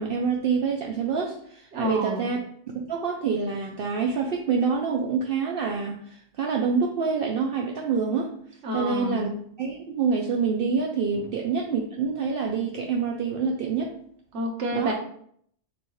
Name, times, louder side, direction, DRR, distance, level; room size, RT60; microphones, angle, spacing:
voice 1, 0.0-2.4 2.8-8.3 8.7-9.3 9.6-13.9 14.7-14.9, right 5 dB, 60° right, 0 dB, 0.7 m, -26 dB
voice 2, 1.7-2.3 8.6-9.3 14.3-14.9, right 1 dB, 75° right, 0 dB, 1.3 m, -29 dB
6.9 x 2.3 x 3.0 m, 0.63 s
omnidirectional pair, 1.2 m